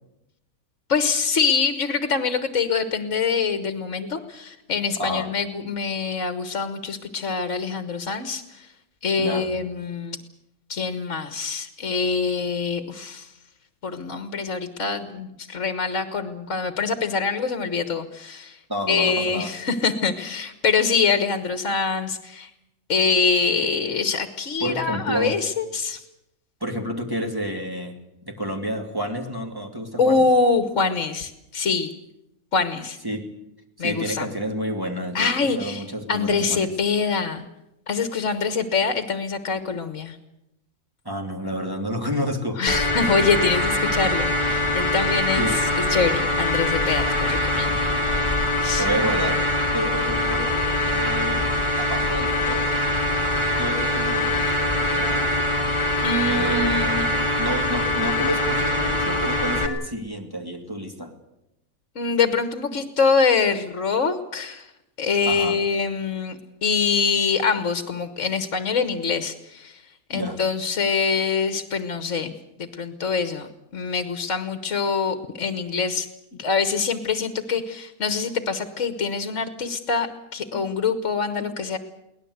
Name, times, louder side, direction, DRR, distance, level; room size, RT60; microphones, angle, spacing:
voice 1, 0.9-8.7 9.0-10.2 10.7-13.3 13.8-18.6 18.9-22.5 22.9-26.0 30.0-31.9 32.5-33.0 33.8-34.3 35.1-35.8 36.1-37.4 37.9-40.2 42.6-47.7 48.6-48.8 56.0-57.0 61.9-64.7 65.0-69.8 70.1-72.3 72.6-76.1 76.4-81.8, left 5 dB, 60° left, 9 dB, 1.7 m, -24 dB
voice 2, 9.2-9.7 18.7-19.5 24.6-25.4 26.6-28.0 28.3-30.2 33.0-33.3 33.8-36.7 41.0-42.6 45.4-45.6 48.8-49.4 49.7-51.5 51.8-52.6 53.6-55.4 56.3-61.1 65.2-65.6 70.1-70.4 80.5-80.7 81.4-81.6, equal, 15° right, 2 dB, 2.6 m, -30 dB
sound 1, 42.7-59.7, left 1 dB, 20° left, 2.0 m, -23 dB
23.0 x 18.5 x 8.1 m, 0.88 s
omnidirectional pair, 1.5 m